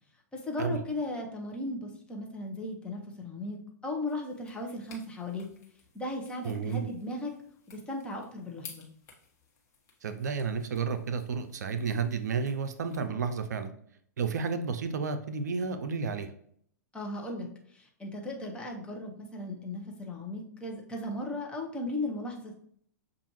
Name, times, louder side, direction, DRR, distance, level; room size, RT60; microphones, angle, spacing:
voice 1, 0.3-5.4 5.9-7.3 7.7-8.9 16.9-17.5 17.7-22.5, left 2 dB, 10° left, 0 dB, 0.9 m, -36 dB
sound 1, 4.1-13.1, left 5 dB, 30° left, 1.2 m, -56 dB
voice 2, 6.4-6.9 10.0-13.7 14.2-16.3, right 5 dB, 70° right, 9 dB, 0.5 m, -31 dB
6.8 x 2.5 x 3.0 m, 0.64 s
hypercardioid pair, 110°, 9 cm